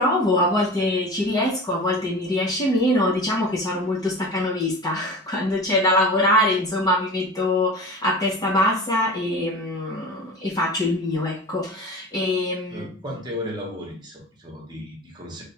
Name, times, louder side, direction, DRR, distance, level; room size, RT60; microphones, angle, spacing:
voice 1, 0.0-12.9, left 1 dB, 20° left, -4 dB, 0.7 m, -23 dB
voice 2, 12.7-15.4, left 1 dB, 20° right, -2 dB, 1.1 m, -35 dB
3.3 x 2.6 x 4.3 m, 0.41 s
head